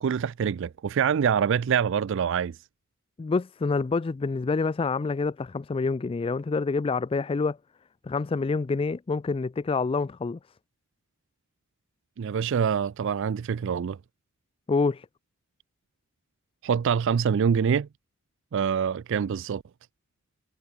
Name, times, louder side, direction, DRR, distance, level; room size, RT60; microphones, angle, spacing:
voice 1, 0.0-2.5 12.2-14.0 16.6-17.9 18.5-19.6, right 7 dB, 60° right, 0.4 m, -25 dB
voice 2, 3.2-7.6 8.0-10.4 14.7-15.1, left 4 dB, 25° left, 0.3 m, -27 dB
head